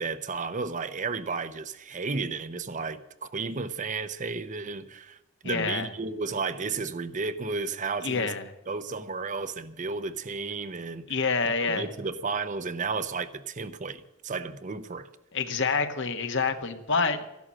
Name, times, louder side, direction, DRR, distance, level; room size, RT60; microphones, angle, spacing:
voice 1, 0.0-5.2 5.4-8.3 8.7-11.0 11.4-15.1, right 4 dB, 35° right, 0.7 m, -33 dB
voice 2, 5.4-5.9 8.0-8.4 11.1-11.9 15.3-17.2, left 4 dB, 60° left, 1.4 m, -27 dB
13.5 x 11.5 x 7.6 m
head